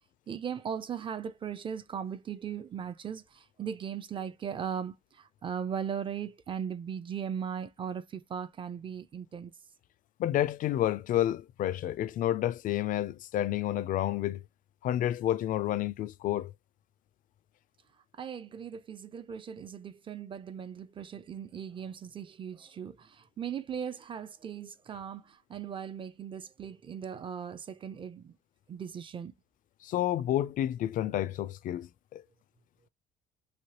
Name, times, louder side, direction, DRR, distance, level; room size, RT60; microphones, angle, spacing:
voice 1, 0.3-9.5 18.2-28.3 28.7-29.3, right 8 dB, 30° right, 0.5 m, -38 dB
voice 2, 10.2-14.4 14.8-16.5 29.8-32.2, left 12 dB, 50° left, 0.4 m, -30 dB
3.1 x 2.8 x 2.8 m
cardioid pair, 110°, 17 cm